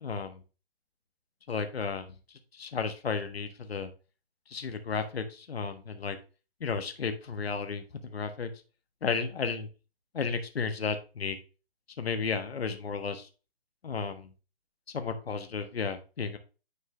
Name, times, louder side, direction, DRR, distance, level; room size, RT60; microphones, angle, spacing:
voice 1, 0.0-0.4 1.5-2.1 2.5-3.9 4.5-6.2 6.6-8.5 9.0-9.7 10.1-11.4 12.0-13.3 13.8-14.3 14.9-16.4, left 5 dB, 70° left, 8 dB, 1.3 m, -33 dB
9.8 x 4.6 x 3.2 m, 0.33 s
figure-of-eight pair, 145°, 32 cm